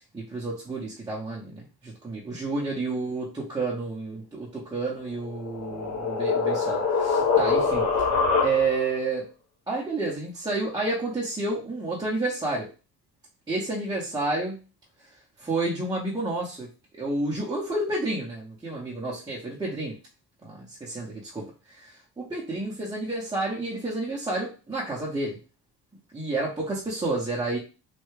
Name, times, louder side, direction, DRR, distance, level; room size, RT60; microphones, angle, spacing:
voice 1, 0.1-7.9 8.4-9.2 9.7-12.7 13.5-14.6 15.4-16.7 17.0-20.0 20.4-25.4 26.1-27.6, right 2 dB, 10° right, -6 dB, 0.6 m, -30 dB
sound 1, 5.2-9.0, left 4 dB, 45° left, 0.7 m, -24 dB
3.2 x 2.2 x 3.1 m, 0.32 s
cardioid pair, 145°, 42 cm